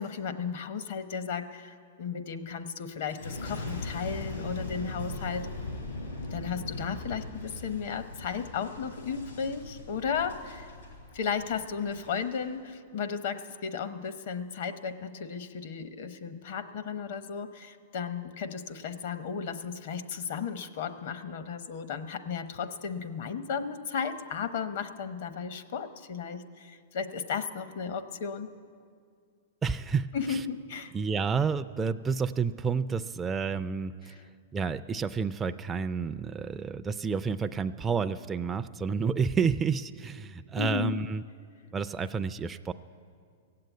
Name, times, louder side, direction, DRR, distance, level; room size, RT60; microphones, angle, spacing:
voice 1, 0.0-5.5 6.3-10.7 11.1-28.5 30.1-30.9 34.1-34.2 40.6-41.0, left 6 dB, 65° left, 10 dB, 0.9 m, -34 dB
Boom, 3.1-12.4 13.0-13.4, left 2 dB, 85° left, 5.1 m, -40 dB
voice 2, 29.6-30.4 30.9-34.1 34.5-41.2 41.7-42.7, right 5 dB, 15° right, 8 dB, 0.3 m, -30 dB
17.0 x 7.7 x 9.2 m, 2.2 s
hypercardioid pair, 135°, 0 cm